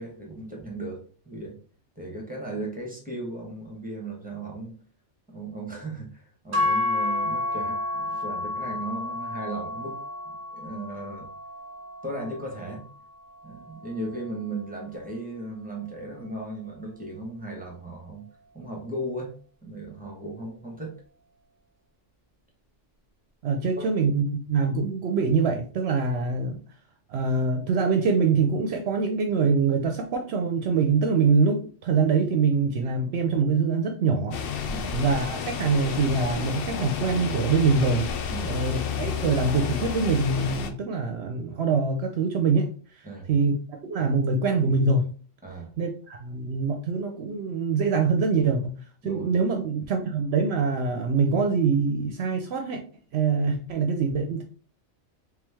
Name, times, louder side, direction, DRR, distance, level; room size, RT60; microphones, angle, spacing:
voice 1, 0.0-1.6 2.0-4.7 5.3-10.0 10.5-11.3 12.0-12.9 13.4-18.3 18.5-19.3 19.6-21.0 23.7-23.8 34.7-34.9 38.3-38.6 43.0-43.3 45.4-45.7 49.0-49.3, right 2 dB, 10° right, -1 dB, 1.0 m, -36 dB
sound 1, 6.5-14.8, left 2 dB, 30° right, 1.2 m, -31 dB
voice 2, 23.4-26.6 27.1-34.4 34.9-38.1 38.5-45.0 45.8-48.7 49.0-52.8 53.1-54.4, right 4 dB, 65° right, 4 dB, 0.8 m, -24 dB
sound 2, 34.3-40.7, left 7 dB, 60° left, 0.6 m, -31 dB
3.4 x 3.1 x 3.4 m, 0.41 s
omnidirectional pair, 1.2 m